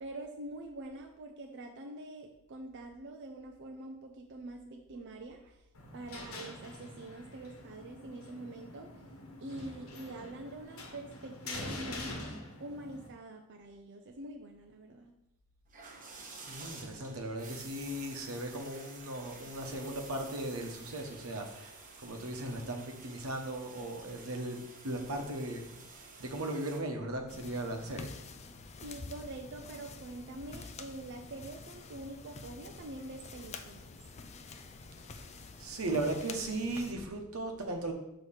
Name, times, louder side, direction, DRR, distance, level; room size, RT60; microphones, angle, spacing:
voice 1, 0.0-5.6 5.9-8.9 9.4-12.2 12.6-15.1 28.8-33.9, right 2 dB, 55° right, 3 dB, 0.5 m, -45 dB
sound 1, 5.7-13.1, left 2 dB, 80° left, 1.1 m, -45 dB
sound 2, 15.7-26.8, right 4 dB, 40° right, 1.0 m, -51 dB
voice 2, 16.5-24.6 24.8-28.1 35.1-35.3 35.6-37.9, right 1 dB, 90° right, 3 dB, 1.0 m, -37 dB
sound 3, 27.3-36.9, left 4 dB, 30° left, 0.4 m, -48 dB
6.5 x 3.0 x 5.6 m, 0.88 s
head